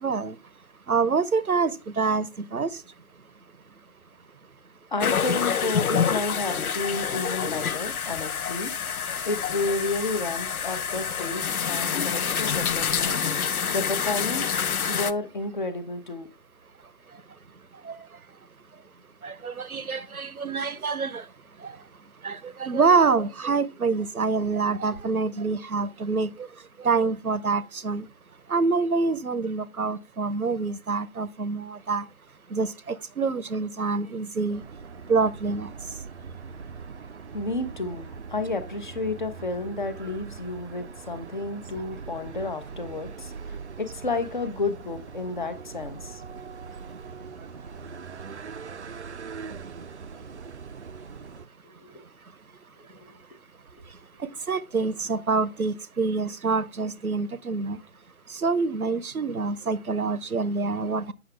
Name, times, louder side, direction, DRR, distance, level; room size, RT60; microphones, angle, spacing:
voice 1, 0.0-0.4 0.9-2.7 13.1-13.2 17.8-18.0 19.2-21.2 21.6-21.7 22.2-26.5 26.8-28.1 28.5-32.1 32.5-34.6 35.1-35.7 54.5-57.8 58.3-61.1, right 4 dB, 85° right, 0.8 m, -26 dB
voice 2, 4.9-14.6 14.9-16.3 37.3-46.2 51.8-52.1 53.0-53.2, left 3 dB, 35° left, 0.8 m, -31 dB
sound 1, 5.0-15.1, left 7 dB, 80° left, 0.6 m, -27 dB
sound 2, 34.5-51.5, right 5 dB, 55° right, 0.5 m, -41 dB
8.1 x 6.0 x 3.3 m
figure-of-eight pair, 145°, 43 cm